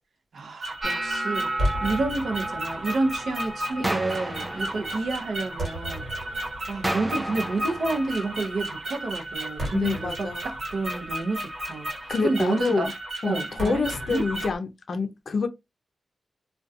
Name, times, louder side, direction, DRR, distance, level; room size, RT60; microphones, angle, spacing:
voice 1, 0.3-1.5 1.8-6.0 6.7-12.9 13.2-13.8 14.1-14.2, right 3 dB, 80° right, 0.6 m, -29 dB
sound 1, 0.6-14.6, right 1 dB, 60° right, 1.2 m, -33 dB
sound 2, 0.8-6.9 7.2-7.7 8.0-8.6 9.2-9.4 11.2-11.3, right 2 dB, 30° right, 0.9 m, -36 dB
sound 3, 3.8-5.9 6.8-8.9, right 1 dB, 15° right, 0.4 m, -34 dB
voice 2, 9.7-10.4 12.1-12.9 13.2-15.5, left 4 dB, 65° left, 0.4 m, -27 dB
2.3 x 2.1 x 2.5 m
wide cardioid pair, 115°, 0 cm